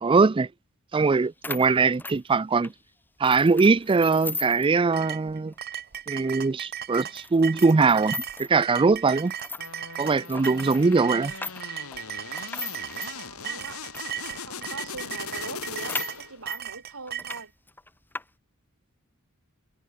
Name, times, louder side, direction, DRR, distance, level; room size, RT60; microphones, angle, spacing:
voice 1, 0.0-0.5 0.9-2.7 3.2-5.5 6.1-9.3 10.0-11.3, right 4 dB, 25° right, 0.4 m, -21 dB
sound 1, 1.1-1.2 1.4-2.8 3.2-4.7 5.0-5.1 5.5-5.6 6.2-6.3 7.0-8.6 9.2-14.1 14.6-14.7 14.9-15.0 15.3-16.6 17.1-17.4 17.7-18.2, left 3 dB, 10° left, 2.1 m, -37 dB
sound 2, 4.9-17.5, right 9 dB, 45° right, 1.0 m, -36 dB
sound 3, 9.6-16.4, left 6 dB, 75° left, 3.1 m, -39 dB
voice 2, 12.3-13.8 14.1-17.5, right 3 dB, 75° right, 3.3 m, -43 dB
head